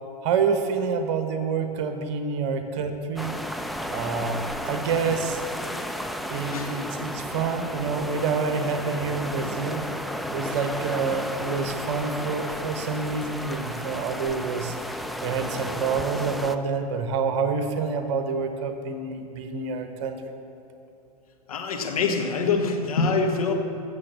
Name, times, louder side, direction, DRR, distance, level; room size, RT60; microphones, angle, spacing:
voice 1, 0.2-3.3 3.9-5.4 6.3-9.9 10.3-14.7 15.2-20.2, right 5 dB, 45° right, 7 dB, 1.2 m, -27 dB
sound 1, 3.2-16.6, equal, ahead, 0.3 m, -33 dB
voice 2, 21.5-23.5, left 4 dB, 65° left, 3 dB, 1.4 m, -25 dB
14.5 x 7.1 x 6.8 m, 2.7 s
figure-of-eight pair, 95°, 20 cm